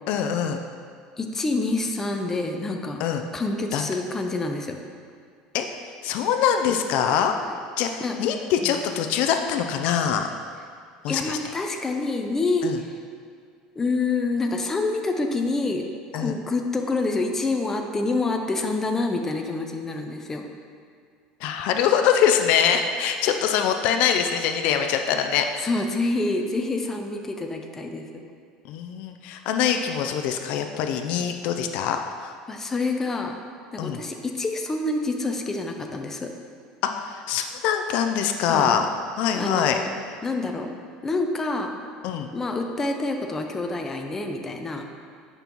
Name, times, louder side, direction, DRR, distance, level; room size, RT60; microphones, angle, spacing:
voice 1, 0.1-0.6 3.0-3.2 3.7-3.9 5.5-5.7 6.0-7.3 7.8-10.3 11.0-11.4 12.6-12.8 16.1-16.3 21.4-25.7 28.6-32.3 33.8-34.0 37.0-38.9 39.2-39.8 42.0-42.3, left 8 dB, 65° left, 6 dB, 0.4 m, -24 dB
voice 2, 1.2-3.0 3.3-4.8 7.5-7.6 8.0-8.2 8.6-8.8 11.1-13.0 13.8-15.9 16.1-20.4 25.6-28.2 32.5-33.4 33.7-36.3 38.4-38.8 39.4-39.9 40.2-41.7 42.3-44.8, left 3 dB, 15° left, 3 dB, 0.5 m, -27 dB
9.0 x 5.4 x 3.0 m, 2.2 s
cardioid pair, 135°, 2 cm